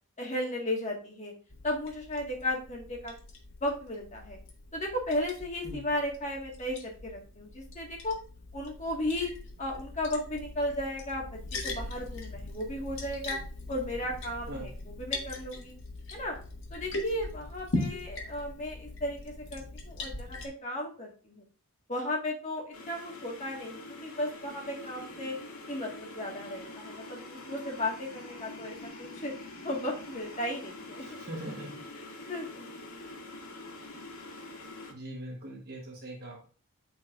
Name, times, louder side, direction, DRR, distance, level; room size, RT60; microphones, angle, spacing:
voice 1, 0.2-1.3 1.6-3.1 3.6-4.4 4.7-8.2 8.5-9.3 9.6-13.4 13.7-14.7 15.0-15.7 16.1-16.4 16.7-21.4 21.9-25.4 25.7-31.2 32.3-32.6, left 1 dB, 30° left, 0 dB, 1.7 m, -35 dB
Liquid, 1.5-20.5, left 2 dB, 60° left, 1.9 m, -40 dB
sound 1, 22.7-34.9, left 2 dB, 80° left, 2.4 m, -45 dB
voice 2, 31.0-31.8 34.9-36.5, right 1 dB, 45° right, -1 dB, 1.3 m, -41 dB
13.5 x 4.6 x 2.5 m, 0.39 s
head